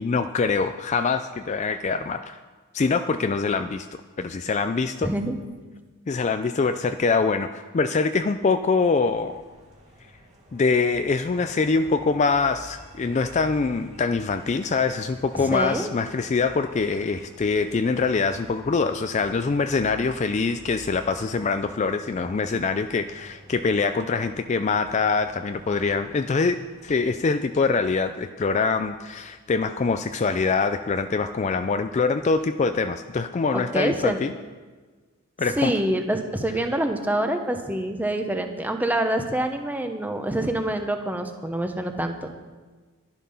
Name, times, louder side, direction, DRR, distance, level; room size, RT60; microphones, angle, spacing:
voice 1, 0.0-2.4 2.7-3.9 4.2-5.1 6.1-9.4 10.5-34.3 35.4-35.7, left 4 dB, 30° left, 9 dB, 0.3 m, -24 dB
voice 2, 5.0-5.4 15.4-15.9 33.5-34.2 35.6-42.3, right 1 dB, 10° right, 5 dB, 0.9 m, -26 dB
sound 1, 8.9-27.0, equal, 30° right, 1.9 m, -49 dB
11.5 x 11.0 x 5.6 m, 1.4 s
head